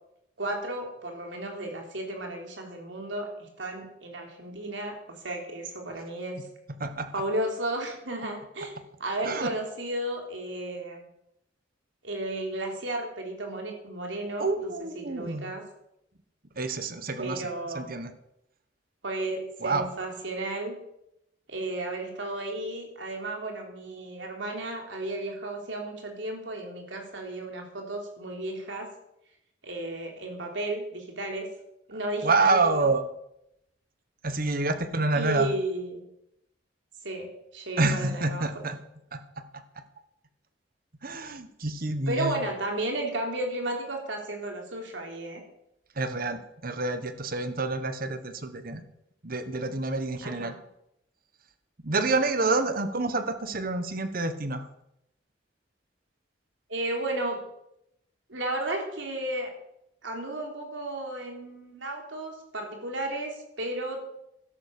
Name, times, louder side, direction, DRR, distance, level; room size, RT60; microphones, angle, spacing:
voice 1, 0.4-6.4 7.1-8.7 9.0-11.1 12.0-14.7 14.9-15.6 17.2-18.0 19.0-20.8 21.5-28.9 29.6-31.5 31.9-32.9 35.1-36.0 37.0-38.4 42.1-45.4 50.2-50.6 52.4-52.5 56.7-57.4 58.3-59.5 60.0-64.0, right 1 dB, 75° right, 2 dB, 3.5 m, -33 dB
voice 2, 14.4-15.5 16.6-17.4 17.7-18.1 19.6-19.9 32.2-33.0 34.2-35.5 37.8-38.8 39.1-39.2 41.0-42.4 46.0-48.8 49.2-50.5 51.8-54.7, right 3 dB, 50° right, 10 dB, 1.3 m, -28 dB
12.5 x 10.5 x 6.8 m, 0.81 s
head